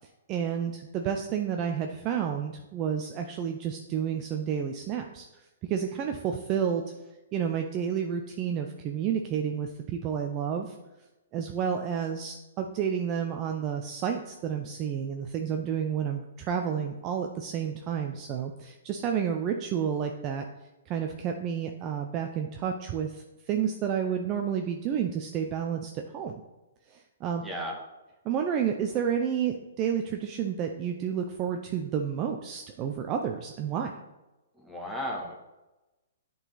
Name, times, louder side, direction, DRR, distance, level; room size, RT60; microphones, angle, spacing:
voice 1, 0.3-6.9 7.3-10.7 11.3-20.4 20.9-26.4 26.9-27.4 28.2-33.9, right 8 dB, 30° right, 4 dB, 0.5 m, -30 dB
voice 2, 27.4-27.7 34.6-35.4, equal, 5° right, -2 dB, 1.3 m, -34 dB
8.0 x 3.9 x 3.9 m, 1.0 s
hypercardioid pair, 145°, 0 cm